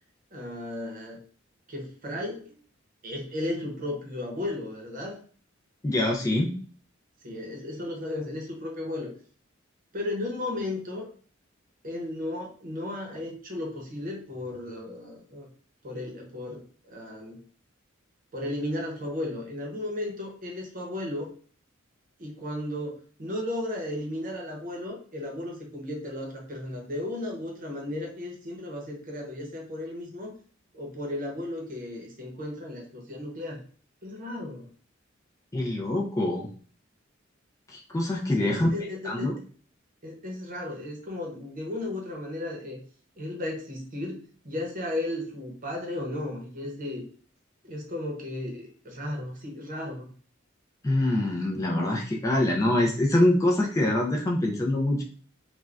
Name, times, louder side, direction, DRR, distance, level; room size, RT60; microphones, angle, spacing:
voice 1, 0.3-1.2 1.7-2.6 3.0-5.2 7.2-9.1 9.9-11.1 11.8-15.5 15.8-17.5 18.3-21.3 22.2-30.4 30.7-33.6 34.0-34.7 38.4-39.3 40.0-42.8 43.2-47.0 47.6-50.1, left 1 dB, 45° right, 1 dB, 0.8 m, -35 dB
voice 2, 5.8-6.5 35.5-36.5 37.7-38.7 39.0-39.4 50.8-55.0, left 1 dB, 15° left, -1 dB, 0.3 m, -24 dB
2.4 x 2.2 x 3.3 m, 0.44 s
head